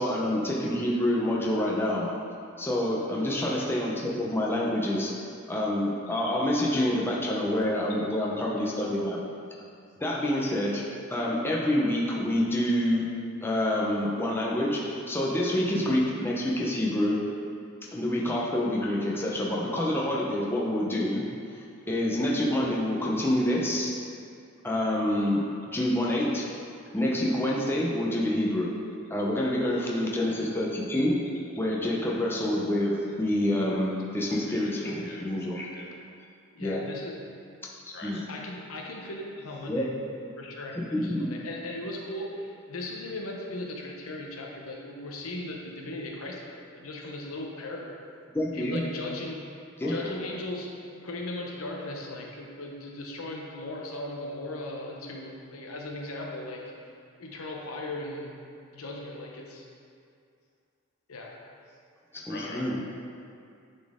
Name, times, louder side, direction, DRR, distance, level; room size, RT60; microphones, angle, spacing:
voice 1, 0.0-2.1 2.6-5.1 5.5-9.2 10.0-10.8 11.1-13.1 13.4-17.2 17.9-21.2 21.9-23.9 24.6-26.5 26.9-28.7 29.1-31.2 31.6-35.6 36.6-36.9 37.9-38.2 39.7-39.8 40.7-41.3 48.3-48.8 49.8-49.9 62.1-62.8, left 1 dB, 10° left, -4 dB, 0.7 m, -27 dB
voice 2, 33.4-33.8 34.8-35.1 36.5-37.2 38.3-39.9 40.4-47.9 48.5-49.4 49.9-56.7 57.2-58.4 58.7-59.7 61.1-61.4, left 2 dB, 85° left, -1 dB, 0.8 m, -38 dB
voice 3, 35.6-35.9 37.9-38.2 49.8-50.1 62.1-62.8, left 2 dB, 55° left, -2 dB, 1.1 m, -43 dB
9.6 x 4.3 x 3.6 m, 2.4 s
head